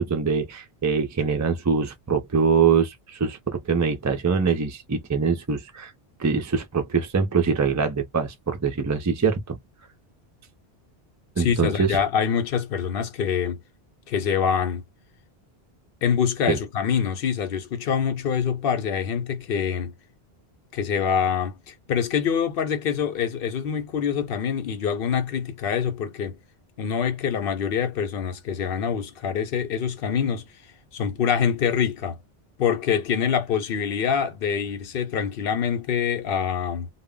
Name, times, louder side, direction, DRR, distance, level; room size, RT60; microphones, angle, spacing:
voice 1, 0.0-5.9 6.2-9.6 11.4-12.0 16.5-16.6, right 5 dB, 25° right, 0.3 m, -23 dB
voice 2, 11.4-13.6 14.1-14.8 16.0-19.9 20.7-26.4 26.8-30.4 30.9-32.2 32.6-36.9, left 7 dB, 65° left, 0.8 m, -25 dB
2.1 x 2.0 x 3.6 m
omnidirectional pair, 1.0 m